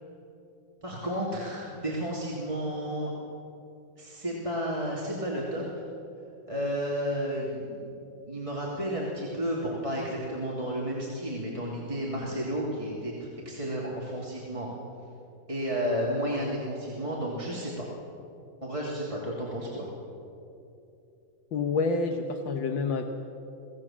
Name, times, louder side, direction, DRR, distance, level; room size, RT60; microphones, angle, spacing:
voice 1, 0.8-3.1 4.0-5.8 6.5-7.9 8.3-14.7 15.5-17.7 18.6-19.9, equal, 15° right, -5 dB, 2.8 m, -32 dB
voice 2, 21.5-23.0, left 4 dB, 80° left, 4 dB, 1.8 m, -28 dB
24.0 x 17.0 x 7.4 m, 2.7 s
omnidirectional pair, 2.1 m